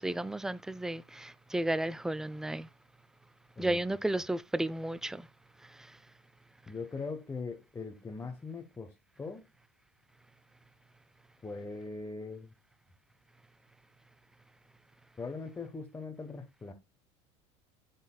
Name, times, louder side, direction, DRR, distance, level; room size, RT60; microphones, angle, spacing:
voice 1, 0.0-2.7 3.6-5.2, right 1 dB, 5° right, 0.3 m, -33 dB
voice 2, 6.7-9.4 11.4-12.5 15.2-16.7, left 4 dB, 15° left, 1.0 m, -41 dB
10.5 x 4.1 x 2.2 m
hypercardioid pair, 85°, 16 cm